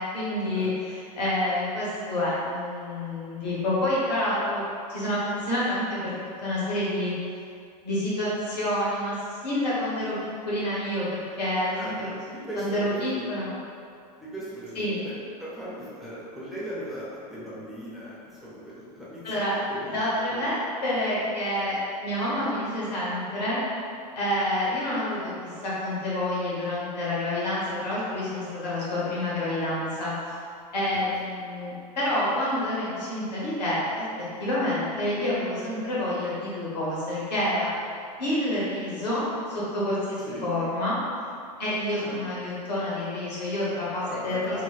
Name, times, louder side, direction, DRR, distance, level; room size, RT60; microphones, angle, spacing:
voice 1, 0.0-4.6 4.9-6.1 6.4-7.1 7.8-9.1 9.4-10.1 10.4-12.1 12.5-13.5 14.7-15.0 19.2-19.5 19.9-20.6 20.8-23.6 24.1-30.4 30.7-34.0 34.4-37.7 38.2-41.0 41.6-44.6, left 1 dB, 80° left, -8 dB, 1.2 m, -28 dB
voice 2, 11.8-13.3 14.2-15.1 15.4-19.2 19.7-20.0 20.3-20.5 40.3-40.5 42.0-42.2 44.1-44.6, equal, ahead, -9 dB, 0.7 m, -37 dB
3.0 x 2.9 x 2.3 m, 2.4 s
hypercardioid pair, 95°, 21 cm